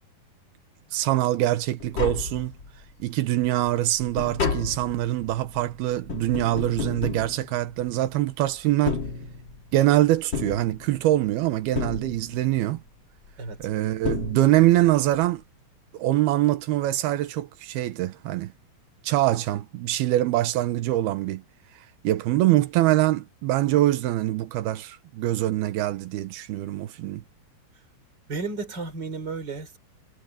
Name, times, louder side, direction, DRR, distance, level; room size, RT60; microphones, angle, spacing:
voice 1, 0.9-2.5 3.0-9.0 9.7-12.8 13.6-15.4 15.9-18.5 19.0-21.4 22.0-27.2, right 15 dB, 90° right, 3.0 m, -24 dB
Tap, 1.8-2.9 3.3-8.1 8.7-9.8 10.3-11.3 11.7-12.6 13.6-13.7 14.0-14.9 15.1-15.2, left 5 dB, 40° left, 2.1 m, -32 dB
voice 2, 13.4-13.7 28.3-29.8, right 4 dB, 25° right, 4.2 m, -33 dB
omnidirectional pair, 4.4 m